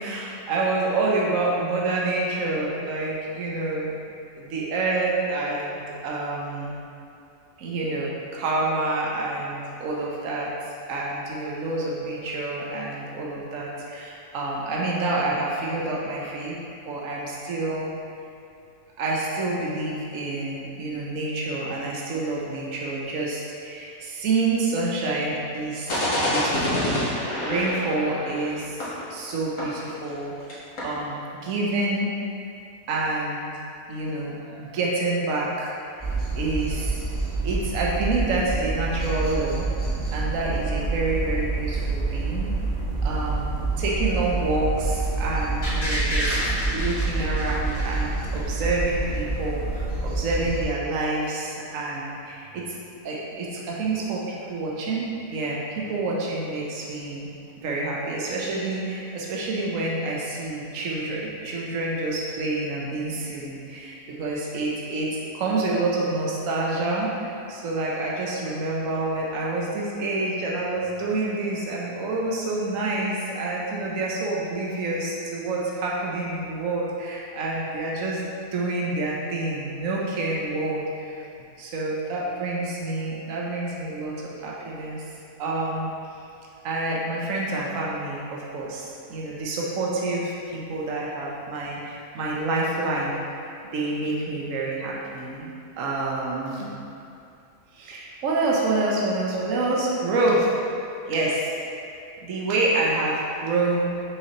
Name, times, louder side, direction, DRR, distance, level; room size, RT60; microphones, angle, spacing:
voice 1, 0.0-3.9 4.3-6.8 7.6-16.6 16.8-17.9 19.0-27.1 27.4-30.3 30.8-32.1 32.9-33.5 33.9-37.0 37.4-39.7 40.1-42.5 43.0-52.7 53.0-57.3 57.6-65.1 65.3-78.2 78.5-81.2 81.6-84.1 84.4-85.1 85.4-85.9 86.6-93.2 93.7-95.5 95.8-96.7 97.7-100.5 101.1-101.5 102.2-104.0, right 2 dB, 70° right, -4 dB, 1.2 m, -28 dB
sound 1, 25.9-30.2 30.5-30.6 30.8-31.0, left 1 dB, 90° left, 1.9 m, -27 dB
sound 2, 36.0-50.6, right 3 dB, 5° left, 1.3 m, -27 dB
sound 3, 45.6-48.6 48.9-49.0, equal, 60° left, 2.1 m, -29 dB
6.3 x 5.7 x 3.0 m, 2.5 s
omnidirectional pair, 1.4 m